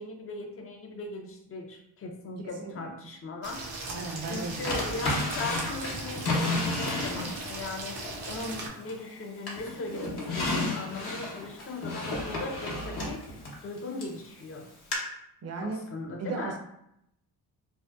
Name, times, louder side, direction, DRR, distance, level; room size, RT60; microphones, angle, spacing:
voice 1, 0.0-3.6 4.3-8.0 8.3-13.2 13.6-14.7 15.6-16.6, left 2 dB, 30° left, 3 dB, 0.5 m, -38 dB
voice 2, 2.4-2.9 3.9-5.1 15.4-15.8 16.2-16.6, right 3 dB, 35° right, 2 dB, 0.5 m, -36 dB
sound 1, 3.4-8.7, right 2 dB, 75° right, 0.7 m, -38 dB
Drawer open or close, 4.6-7.6 8.0-9.1 9.5-14.2 14.9-15.0, left 2 dB, 55° left, 0.9 m, -32 dB
2.6 x 2.1 x 2.3 m, 0.78 s
cardioid pair, 55°, 46 cm